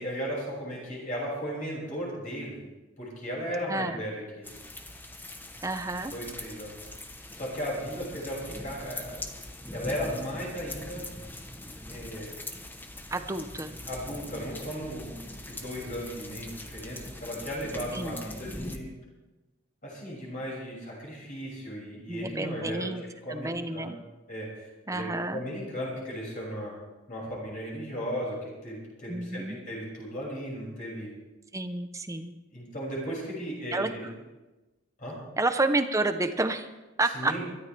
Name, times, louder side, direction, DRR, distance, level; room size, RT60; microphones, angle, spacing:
voice 1, 0.0-2.6 3.0-4.5 6.1-6.7 7.3-9.2 9.7-11.1 11.9-12.4 13.9-18.8 19.8-22.9 23.2-23.9 24.3-26.7 27.1-31.1 32.5-34.1 35.0-35.2 37.1-37.4, equal, 45° left, -4 dB, 6.3 m, -36 dB
voice 2, 3.7-4.0 5.6-6.1 13.1-13.8 17.9-18.3 22.1-23.0 23.3-24.0 24.9-25.4 29.1-29.6 31.5-32.3 33.7-34.1 35.4-36.7 37.0-37.3, right 2 dB, 15° right, 8 dB, 0.8 m, -30 dB
sound 1, 4.4-18.8, left 1 dB, 10° left, 1.0 m, -42 dB
23.5 x 12.5 x 3.4 m, 1.1 s
head